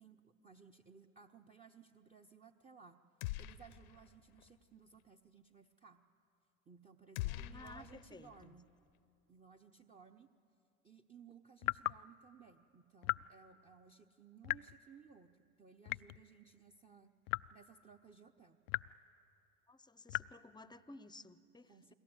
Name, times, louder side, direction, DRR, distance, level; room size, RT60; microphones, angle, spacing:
voice 1, 0.0-3.0 3.4-6.0 6.7-8.7 9.3-10.3 10.8-17.1 17.5-18.6 21.7-21.9, right 6 dB, 15° right, 8 dB, 1.0 m, -60 dB
sound 1, 3.2-4.1 4.4-4.5 7.1-8.4, left 15 dB, 75° left, 1.0 m, -43 dB
voice 2, 7.3-8.5 19.7-21.9, left 2 dB, 10° left, 16 dB, 0.9 m, -55 dB
sound 2, 11.6-12.0 13.0-13.3 14.4-14.8 15.9-16.3 17.3-17.6 18.7-19.0 20.1-20.4, left 23 dB, 60° left, 0.5 m, -37 dB
29.0 x 21.0 x 8.1 m, 2.6 s
hypercardioid pair, 85°, 43 cm